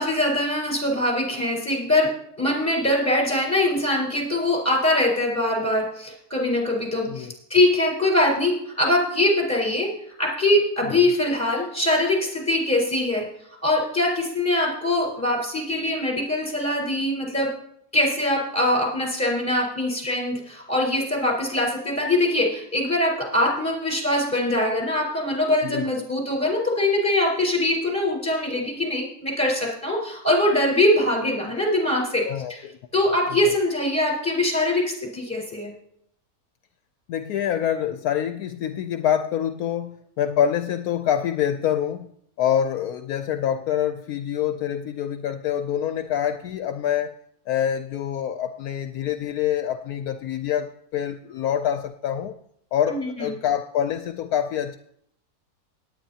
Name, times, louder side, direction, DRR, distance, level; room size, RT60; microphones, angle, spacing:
voice 1, 0.0-2.1 2.4-9.9 10.2-13.2 13.6-17.5 17.9-32.2 32.9-35.7 52.9-53.3, left 1 dB, 10° left, -2 dB, 4.1 m, -23 dB
voice 2, 25.6-26.0 32.2-32.8 37.1-42.1 42.4-47.1 47.5-52.3 52.7-54.8, left 9 dB, 75° left, 8 dB, 1.0 m, -26 dB
18.0 x 9.8 x 2.8 m, 0.72 s
omnidirectional pair, 1.7 m